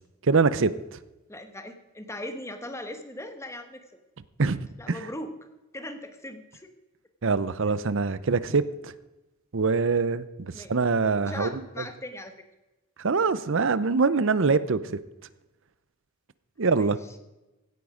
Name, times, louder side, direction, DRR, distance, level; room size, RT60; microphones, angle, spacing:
voice 1, 0.3-0.7 4.4-4.6 4.9-5.1 7.2-8.9 9.5-11.6 13.0-15.0 16.6-17.0, right 4 dB, 60° right, 16 dB, 0.6 m, -24 dB
voice 2, 1.3-3.8 4.8-5.4 5.7-6.7 10.5-10.7 11.2-12.3 16.7-17.2, left 1 dB, 15° left, 7 dB, 1.2 m, -39 dB
16.5 x 9.4 x 5.0 m, 1.0 s
head